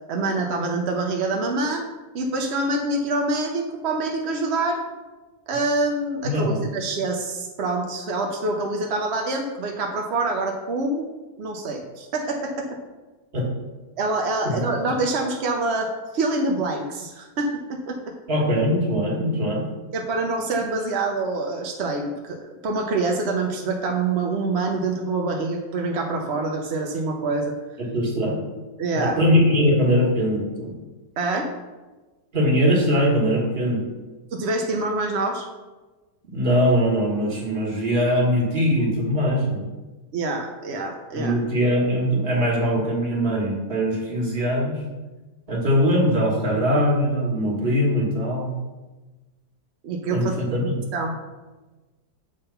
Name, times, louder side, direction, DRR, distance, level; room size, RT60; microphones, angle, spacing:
voice 1, 0.1-1.8 2.1-4.8 5.5-11.1 11.4-12.7 14.0-18.0 19.9-27.6 28.8-29.2 31.2-31.5 34.3-35.5 40.1-41.4 49.8-50.3 50.6-51.1, right 2 dB, 65° right, 2 dB, 0.6 m, -26 dB
voice 2, 6.2-6.6 13.3-13.5 14.4-14.6 18.3-19.7 27.8-28.4 28.9-30.7 32.3-33.8 36.3-39.7 41.1-44.8 45.5-48.5 50.1-50.2 50.5-50.8, equal, 35° right, -2 dB, 1.7 m, -21 dB
7.8 x 3.6 x 5.6 m, 1.2 s
omnidirectional pair, 1.9 m